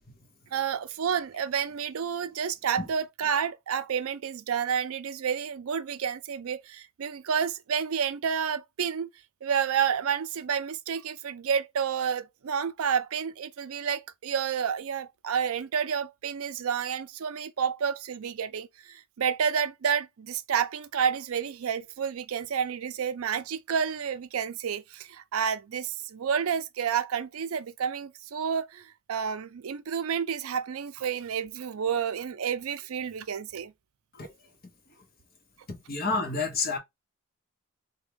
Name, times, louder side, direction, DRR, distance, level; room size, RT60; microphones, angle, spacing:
voice 1, 0.5-9.1 9.4-33.7, right 7 dB, 75° right, 0.4 m, -30 dB
voice 2, 35.7-36.8, left 4 dB, 45° left, 0.9 m, -29 dB
3.5 x 2.2 x 3.3 m
head